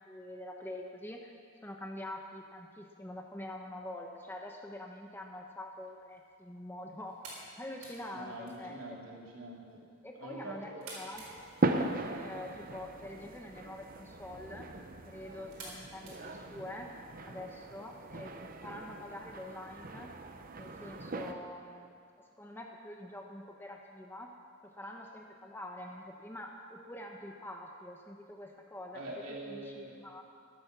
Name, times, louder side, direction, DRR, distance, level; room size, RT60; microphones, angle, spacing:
voice 1, 0.1-1.3 1.6-7.2 7.6-8.8 10.0-11.8 12.2-14.7 15.1-16.9 17.3-18.3 18.6-20.1 20.5-21.9 22.4-24.3 24.6-29.0 29.4-30.2, left 1 dB, 10° left, 2 dB, 0.8 m, -45 dB
sound 1, 5.7-17.1, right 2 dB, 80° right, 4.8 m, -54 dB
voice 2, 8.1-9.8 10.2-10.9 28.9-30.0, right 1 dB, 60° right, -3 dB, 3.2 m, -44 dB
sound 2, 11.1-21.3, right 2 dB, 40° right, 0.8 m, -39 dB
13.0 x 12.0 x 6.9 m, 2.1 s
head